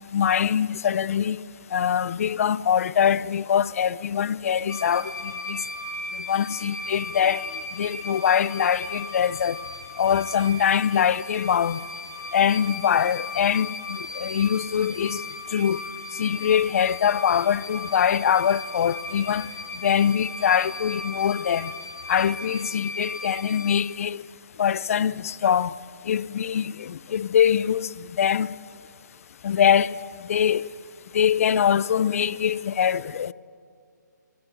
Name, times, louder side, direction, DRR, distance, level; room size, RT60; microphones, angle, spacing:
voice 1, 0.1-1.4 1.7-5.6 6.3-7.4 7.8-9.6 10.0-11.8 12.3-15.3 15.5-15.8 16.2-19.5 19.8-21.7 22.1-24.2 24.6-25.7 26.1-28.5 29.4-30.0 30.3-30.7 31.1-33.3, left 8 dB, 50° left, 0.7 m, -23 dB
sound 1, 4.7-23.8, left 2 dB, 80° left, 3.0 m, -37 dB
25.5 x 24.0 x 7.6 m
hypercardioid pair, 150°, 10 cm